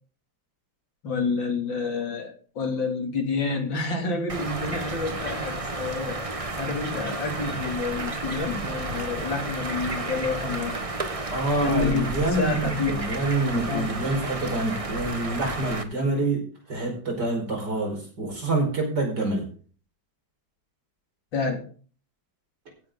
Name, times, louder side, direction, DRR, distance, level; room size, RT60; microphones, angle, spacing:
voice 1, 1.0-10.8 11.6-13.0 13.7-13.8 21.3-21.6, left 4 dB, 75° left, 4 dB, 3.4 m, -28 dB
sound 1, 4.3-15.8, right 2 dB, 20° right, 1.0 m, -32 dB
voice 2, 11.3-16.4 16.7-19.5, right 2 dB, 60° right, 2 dB, 5.6 m, -27 dB
15.5 x 10.5 x 3.9 m, 0.41 s
omnidirectional pair, 2.1 m